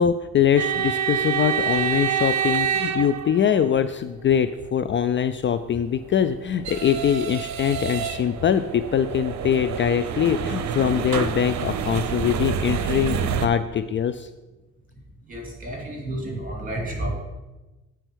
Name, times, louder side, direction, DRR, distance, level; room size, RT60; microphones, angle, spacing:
voice 1, 0.0-14.3, left 8 dB, 40° left, 11 dB, 0.4 m, -23 dB
sound 1, 0.6-3.8 5.8-13.5, right 8 dB, 65° right, 0.7 m, -27 dB
voice 2, 15.3-17.2, right 1 dB, 25° right, -1 dB, 3.1 m, -30 dB
8.8 x 4.6 x 6.2 m, 1.1 s
cardioid pair, 90°, 30 cm